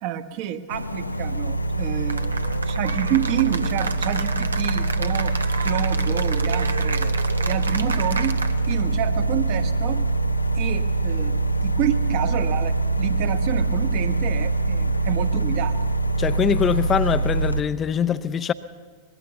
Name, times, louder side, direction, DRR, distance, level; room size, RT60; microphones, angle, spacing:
voice 1, 0.0-2.3 2.6-5.3 5.6-7.1 7.5-10.0 10.6-15.8, right 11 dB, 45° right, 9 dB, 1.4 m, -28 dB
sound 1, 0.7-17.6, right 3 dB, 85° left, 0.6 m, -24 dB
Cheering / Applause, 2.1-8.8, right 4 dB, 75° right, 1.0 m, -32 dB
voice 2, 16.2-18.5, left 8 dB, 25° left, 11 dB, 0.6 m, -23 dB
23.5 x 20.5 x 7.1 m, 1.5 s
figure-of-eight pair, 90°, 0 cm